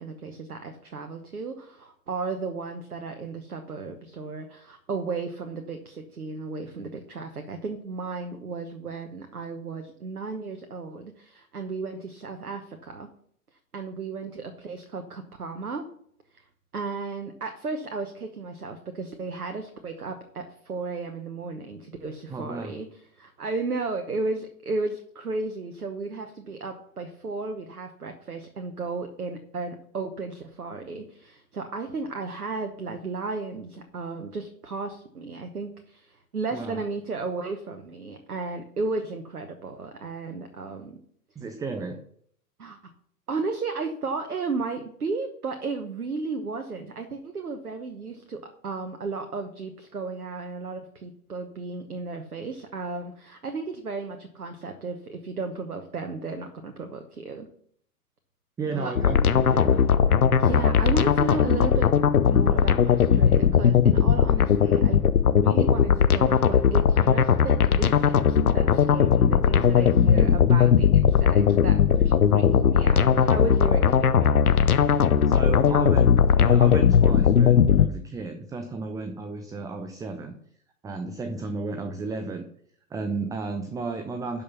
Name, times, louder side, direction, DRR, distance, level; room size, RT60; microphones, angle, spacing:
voice 1, 0.0-13.1 13.7-15.8 16.3-16.4 16.7-41.0 42.6-42.8 43.3-57.5 58.7-58.9 60.4-61.9 62.3-74.6, right 3 dB, 85° right, 6 dB, 1.1 m, -34 dB
voice 2, 22.3-22.8 36.5-36.8 41.4-42.0 58.6-59.9 70.0-70.4 75.3-80.4 80.8-82.5 82.9-84.4, right 3 dB, 10° right, 8 dB, 0.5 m, -33 dB
sound 1, 59.0-77.9, left 7 dB, 85° left, 0.8 m, -19 dB
11.5 x 5.5 x 5.6 m, 0.64 s
figure-of-eight pair, 100°, 44 cm